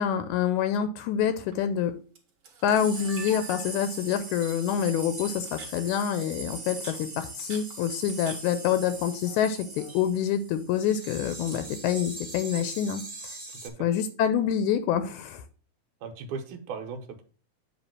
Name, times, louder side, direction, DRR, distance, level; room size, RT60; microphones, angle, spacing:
voice 1, 0.0-2.0 2.6-13.4 13.8-15.4, left 9 dB, 80° left, 10 dB, 2.0 m, -27 dB
Camera, 1.3-1.5 2.2-2.3 2.4-4.0 4.4-4.5 5.2-5.8 6.6-8.4 8.7-9.4 9.7-10.0 10.8-11.7, right 4 dB, 50° right, 2.1 m, -44 dB
Shimmering Object, 2.8-13.7, right 2 dB, 30° right, 1.0 m, -41 dB
voice 2, 13.5-13.9 16.0-17.2, right 5 dB, 80° right, 4 dB, 2.4 m, -38 dB
8.2 x 3.1 x 5.9 m, 0.39 s
omnidirectional pair, 3.5 m